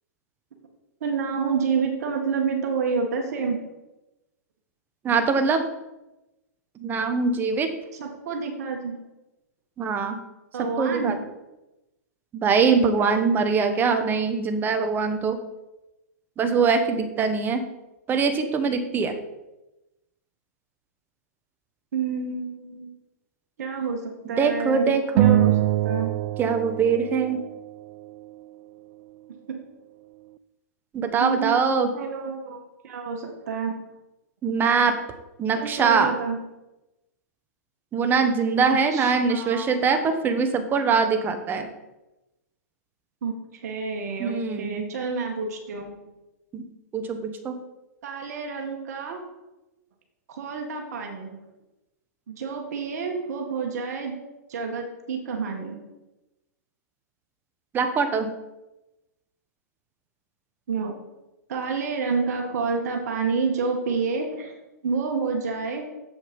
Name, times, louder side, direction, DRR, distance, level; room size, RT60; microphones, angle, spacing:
voice 1, 1.0-3.6 7.9-9.0 10.5-11.1 21.9-22.9 23.6-25.6 25.8-26.1 29.5-29.6 31.2-33.7 35.6-36.4 38.7-39.7 43.2-46.1 48.0-49.2 50.3-51.4 52.3-54.1 54.5-55.8 60.7-61.0 61.5-64.5 64.8-65.9, right 5 dB, 65° right, 2 dB, 1.8 m, -29 dB
voice 2, 5.0-5.6 6.8-7.7 9.8-10.2 10.6-11.2 12.3-15.4 16.4-17.7 18.1-19.1 24.4-25.4 26.4-27.4 30.9-31.9 34.4-35.0 35.4-36.1 37.9-41.7 44.2-44.9 46.5-46.6 46.9-47.5 57.7-58.3, right 5 dB, 20° right, 7 dB, 1.2 m, -23 dB
sound 1, 25.2-27.8, right 14 dB, 50° right, 0.4 m, -23 dB
7.9 x 7.0 x 5.4 m, 0.99 s
hypercardioid pair, 130°, 9 cm